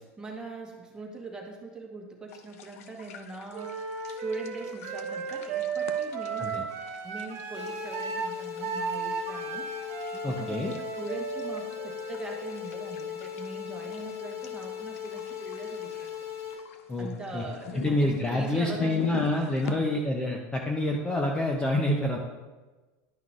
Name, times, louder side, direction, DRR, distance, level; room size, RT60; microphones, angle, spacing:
voice 1, 0.2-6.7 7.0-16.2 17.0-19.2 19.6-19.9, right 3 dB, 10° right, 0 dB, 1.2 m, -41 dB
sound 1, 2.3-19.7, left 8 dB, 90° left, 0.6 m, -45 dB
Wind instrument woodwind instrument, 3.5-13.3, right 6 dB, 50° right, 1.1 m, -35 dB
sound 2, 7.5-16.5, left 10 dB, 70° left, 2.5 m, -38 dB
voice 2, 10.2-10.7 16.9-17.4 17.7-22.2, left 1 dB, 15° left, 1 dB, 0.7 m, -27 dB
11.0 x 5.7 x 2.5 m, 1.2 s
supercardioid pair, 140°, 8 cm